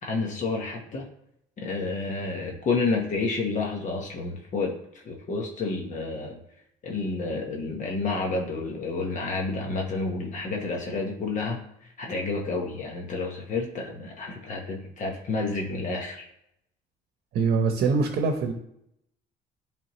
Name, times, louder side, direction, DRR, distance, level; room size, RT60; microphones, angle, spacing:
voice 1, 0.0-1.1 1.6-4.8 5.0-6.4 6.8-16.3, left 3 dB, 45° left, 0 dB, 1.1 m, -30 dB
voice 2, 17.3-18.5, right 4 dB, 65° right, 5 dB, 0.8 m, -23 dB
10.5 x 3.5 x 3.0 m, 0.76 s
cardioid pair, 110°, 17 cm